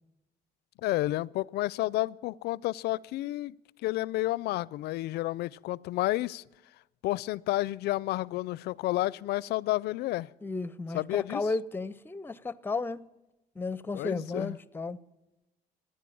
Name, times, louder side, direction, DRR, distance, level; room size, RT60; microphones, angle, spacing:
voice 1, 0.8-3.5 3.8-6.4 7.0-10.3 10.9-11.4 13.9-14.6, left 17 dB, 75° left, 0.4 m, -30 dB
voice 2, 10.4-13.0 13.6-15.0, left 3 dB, 10° left, 0.5 m, -33 dB
15.0 x 10.0 x 8.5 m
cardioid pair, 110°, 17 cm